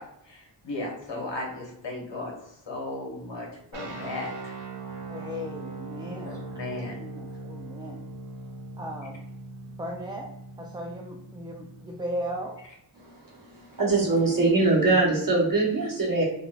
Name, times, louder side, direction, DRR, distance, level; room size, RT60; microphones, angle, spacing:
voice 1, 0.0-4.5 6.2-7.0, left 2 dB, 75° left, -1 dB, 1.0 m, -36 dB
sound 1, 3.7-12.6, right 2 dB, 85° right, 0.7 m, -40 dB
voice 2, 5.1-6.4 6.7-8.0 8.8-9.2 9.7-10.3 10.6-12.6, equal, 10° right, 0 dB, 0.3 m, -37 dB
voice 3, 13.7-16.2, right 3 dB, 50° right, -4 dB, 1.2 m, -22 dB
3.0 x 2.6 x 2.3 m, 0.78 s
wide cardioid pair, 60°, 44 cm